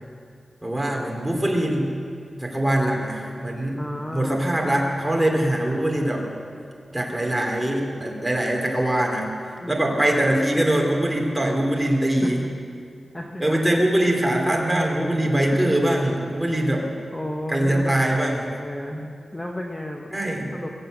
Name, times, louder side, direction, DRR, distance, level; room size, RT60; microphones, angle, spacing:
voice 1, 0.6-1.9 2.4-3.8 4.1-6.3 6.9-9.4 9.7-12.4 13.4-16.9 17.5-18.5 20.1-20.5, right 1 dB, 10° right, -1 dB, 2.7 m, -22 dB
voice 2, 3.8-4.5 9.6-10.0 12.2-12.6 13.1-13.6 15.5-15.8 16.9-20.1 20.5-20.7, left 1 dB, 10° left, 1 dB, 0.9 m, -33 dB
23.0 x 7.7 x 7.8 m, 2.3 s
wide cardioid pair, 145°, 0 cm